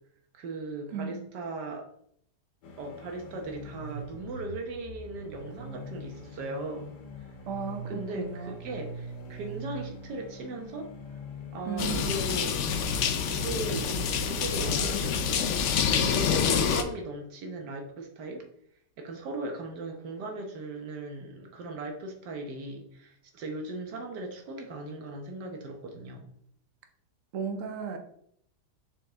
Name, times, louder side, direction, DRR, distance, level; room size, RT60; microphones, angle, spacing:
voice 1, 0.3-1.8 2.8-7.0 7.9-10.9 11.5-12.6 13.2-15.6 16.0-18.5 19.0-26.3, right 2 dB, 90° right, 3 dB, 1.6 m, -38 dB
voice 2, 0.9-1.2 7.5-8.6 11.6-12.1 27.3-28.0, right 6 dB, 55° right, 5 dB, 1.1 m, -35 dB
sound 1, 2.6-16.4, right 1 dB, 85° left, 1.6 m, -43 dB
sound 2, 11.8-16.8, left 7 dB, 65° left, 0.7 m, -27 dB
6.4 x 4.6 x 3.5 m, 0.69 s
omnidirectional pair, 1.8 m